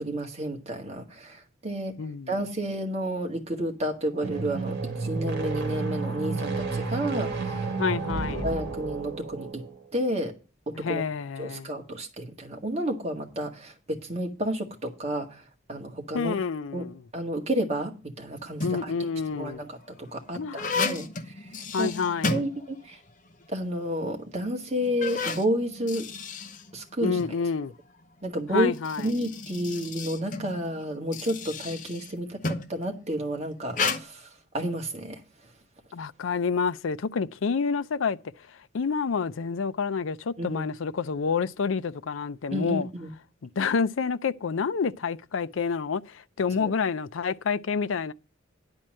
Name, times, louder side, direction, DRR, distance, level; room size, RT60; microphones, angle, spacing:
voice 1, 0.0-1.9 2.3-7.8 8.4-9.6 9.9-10.3 10.7-11.0 11.4-15.4 15.7-16.3 16.7-16.9 17.1-19.0 19.3-19.7 20.0-21.9 22.3-23.0 23.5-26.1 26.7-27.2 28.2-28.7 29.0-34.3 34.5-35.2 40.4-40.7 42.5-43.1 46.6-46.7, right 1 dB, 35° right, 1.8 m, -31 dB
voice 2, 2.0-2.3 7.8-8.4 10.8-11.7 16.1-17.0 18.6-19.6 20.3-20.7 21.7-22.5 27.0-27.7 28.5-29.1 35.9-38.2 38.7-42.9 43.4-48.1, left 5 dB, 85° left, 0.5 m, -28 dB
sound 1, 4.1-9.8, right 3 dB, 55° right, 2.1 m, -31 dB
sound 2, 18.4-19.0 19.7-23.1 23.4-23.5 24.2-24.3 24.8-27.4 28.6-32.8 33.7-34.0, left 4 dB, 40° left, 0.8 m, -33 dB
10.5 x 4.4 x 7.5 m
head